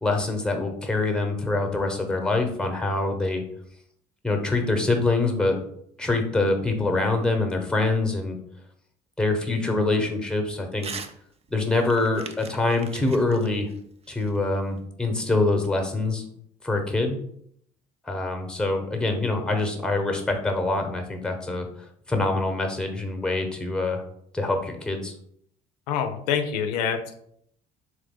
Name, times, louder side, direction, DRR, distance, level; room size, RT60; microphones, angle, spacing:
voice 1, 0.0-3.4 4.2-5.6 6.0-8.4 9.2-11.0 11.5-13.7 14.1-16.2 16.6-17.2 18.1-21.7 22.1-24.0 24.3-25.1, left 2 dB, 5° left, 5 dB, 1.0 m, -25 dB
Crumpling crinkling / Tearing, 10.8-11.2 11.5-14.8, right 6 dB, 30° right, 0.5 m, -41 dB
voice 2, 25.9-27.2, left 7 dB, 75° left, 6 dB, 0.5 m, -26 dB
3.6 x 3.1 x 3.6 m, 0.68 s
hypercardioid pair, 60°, 21 cm